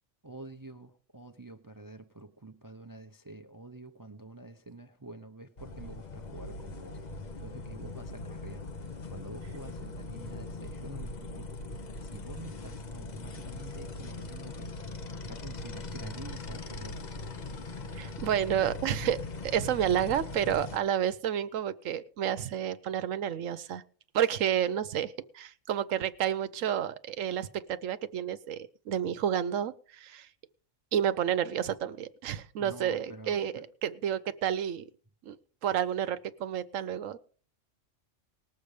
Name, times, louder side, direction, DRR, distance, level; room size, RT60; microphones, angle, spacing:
voice 1, 0.2-7.0 7.4-8.7 9.1-11.5 12.0-14.7 15.0-17.0 32.6-33.5, right 2 dB, 20° right, 7 dB, 0.6 m, -47 dB
sound 1, 5.6-20.8, left 3 dB, 40° left, 0.9 m, -40 dB
voice 2, 17.9-23.8 24.1-30.3 30.9-33.5 33.8-34.8 35.2-35.4 35.6-37.2, right 9 dB, 85° right, 12 dB, 1.1 m, -30 dB
19.5 x 6.8 x 4.9 m, 0.42 s
omnidirectional pair, 1.3 m